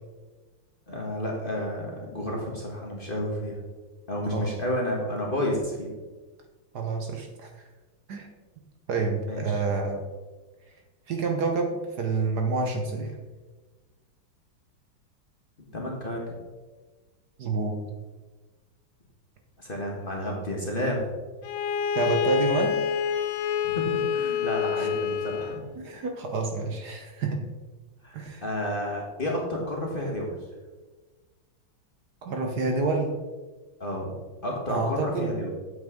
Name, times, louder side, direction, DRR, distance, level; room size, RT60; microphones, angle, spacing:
voice 1, 0.9-3.6 4.1-5.9 9.3-9.6 15.7-16.2 19.6-21.1 23.6-25.7 28.0-30.4 33.8-34.1 34.4-35.5, left 1 dB, 30° left, -2 dB, 1.3 m, -31 dB
voice 2, 6.7-7.7 8.1-8.3 8.9-10.0 11.1-11.7 12.0-13.2 17.4-17.8 21.9-22.8 24.8-24.9 25.8-27.4 28.1-28.4 32.2-33.2 34.7-35.3, right 3 dB, 60° right, 3 dB, 1.3 m, -28 dB
Bowed string instrument, 21.4-25.6, left 8 dB, 85° left, 1.5 m, -27 dB
8.5 x 7.9 x 3.7 m, 1.3 s
omnidirectional pair, 2.2 m